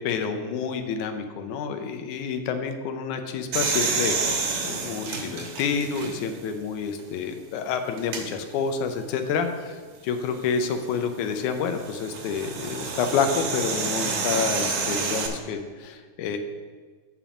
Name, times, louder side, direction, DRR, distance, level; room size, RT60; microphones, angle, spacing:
voice 1, 0.0-4.4 4.6-16.4, left 6 dB, 85° left, 7 dB, 2.2 m, -28 dB
sound 1, 3.5-6.4 7.0-7.1 8.0-8.2 10.4-15.3, right 4 dB, 80° right, 2.6 m, -29 dB
7.3 x 5.3 x 7.1 m, 1.5 s
omnidirectional pair, 3.4 m